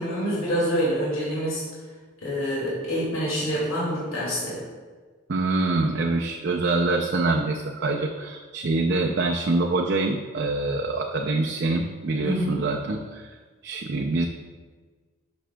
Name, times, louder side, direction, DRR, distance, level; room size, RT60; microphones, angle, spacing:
voice 1, 0.0-1.6 2.2-4.6 12.2-12.7, equal, 75° left, -7 dB, 2.2 m, -26 dB
voice 2, 5.3-13.3 13.6-14.3, right 2 dB, 50° right, 1 dB, 0.4 m, -25 dB
11.0 x 6.1 x 2.2 m, 1.4 s
head